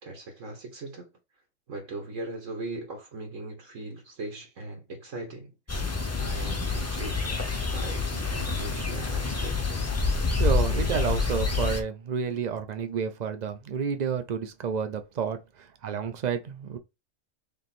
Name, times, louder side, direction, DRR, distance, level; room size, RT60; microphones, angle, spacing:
voice 1, 0.0-1.1 1.7-5.5 6.2-7.4 7.7-9.6, right 2 dB, 70° right, 1.4 m, -39 dB
sound 1, 5.7-11.8, left 4 dB, 20° left, 0.4 m, -27 dB
voice 2, 10.4-16.8, right 6 dB, 50° right, 0.5 m, -30 dB
3.4 x 3.2 x 4.2 m
omnidirectional pair, 1.4 m